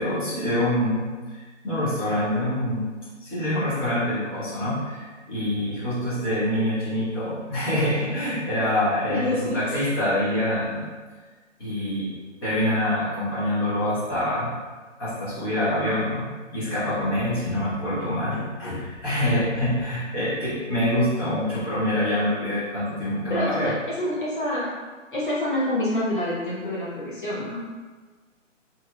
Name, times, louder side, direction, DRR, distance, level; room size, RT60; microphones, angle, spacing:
voice 1, 0.0-2.9 3.2-10.9 11.6-12.1 12.4-14.5 15.0-23.7, left 1 dB, 20° left, -11 dB, 0.9 m, -25 dB
voice 2, 9.1-9.9 23.3-24.7 25.1-27.7, left 1 dB, 40° left, -6 dB, 0.5 m, -27 dB
3.0 x 2.8 x 2.3 m, 1.4 s
hypercardioid pair, 160°, 38 cm